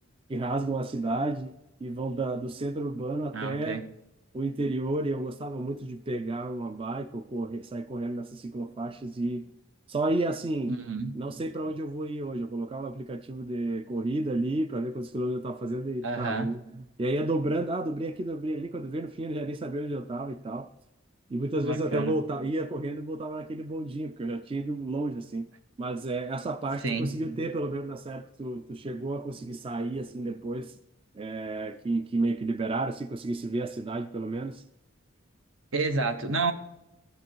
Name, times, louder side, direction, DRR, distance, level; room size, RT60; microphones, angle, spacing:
voice 1, 0.3-3.8 4.3-9.5 9.9-10.7 11.2-16.6 17.0-20.7 21.3-25.5 25.8-30.8 31.1-34.6, right 2 dB, 25° right, 0.4 m, -31 dB
voice 2, 3.3-3.8 10.7-11.1 16.0-16.5 21.6-22.1 26.8-27.2 35.7-36.5, right 3 dB, 75° right, 1.1 m, -30 dB
13.0 x 7.7 x 4.6 m
head